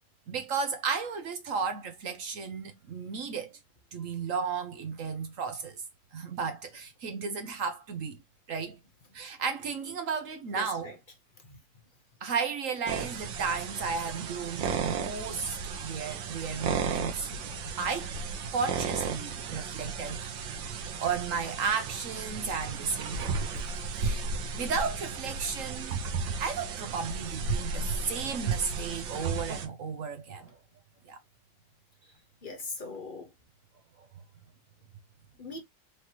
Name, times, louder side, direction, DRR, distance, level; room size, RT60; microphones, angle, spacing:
voice 1, 0.3-3.6 3.9-5.8 6.1-8.2 8.5-8.8 9.1-10.9 12.2-17.3 17.8-18.1 18.5-20.5 21.0-23.3 24.0-24.3 24.5-26.0 26.4-30.5 31.1-31.2, right 5 dB, 60° right, 0.9 m, -34 dB
voice 2, 10.5-11.0 11.4-11.6 32.4-33.3 35.4-35.6, left 3 dB, 50° left, 0.6 m, -40 dB
sound 1, 12.9-29.7, right 5 dB, 85° right, 1.6 m, -34 dB
5.0 x 3.1 x 2.8 m
omnidirectional pair, 2.0 m